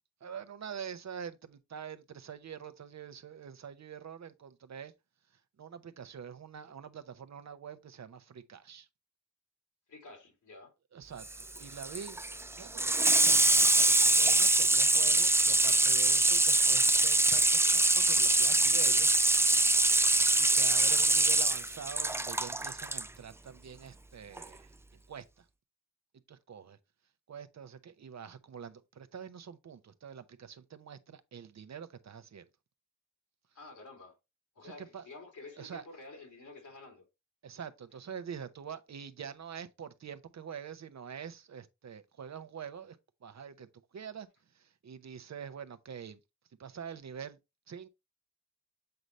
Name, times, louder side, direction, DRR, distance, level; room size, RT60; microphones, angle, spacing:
voice 1, 0.2-4.9 5.6-8.9 10.9-12.2 12.5-12.9 13.4-19.1 20.4-24.7 25.1-25.5 26.3-26.8 27.3-32.4 34.6-35.1 35.6-35.8 37.4-43.7 43.9-44.3 44.5-46.2 46.6-47.4 47.7-47.9, right 7 dB, 60° right, 0.8 m, -45 dB
voice 2, 9.9-10.7 20.4-20.7 33.5-34.2 34.5-37.0, left 3 dB, 80° left, 2.6 m, -50 dB
Water tap faucet / Sink (filling or washing), 11.2-23.1 24.4-24.5, right 2 dB, 10° right, 0.3 m, -24 dB
7.9 x 4.0 x 3.1 m
cardioid pair, 50°, 30 cm